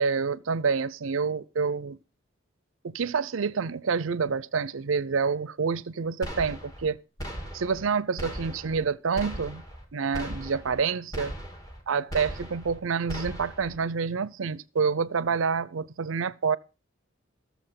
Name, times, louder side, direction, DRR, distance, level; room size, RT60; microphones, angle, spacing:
voice 1, 0.0-2.0 2.8-7.0 7.5-9.6 9.9-11.3 11.9-16.6, right 5 dB, 80° right, 0.6 m, -28 dB
sound 1, 6.2-6.9 7.2-7.9 8.2-8.9 9.2-9.8 10.1-10.8 11.1-11.8 12.1-12.8 13.1-13.8, equal, 20° left, 2.3 m, -38 dB
14.5 x 7.1 x 5.7 m
head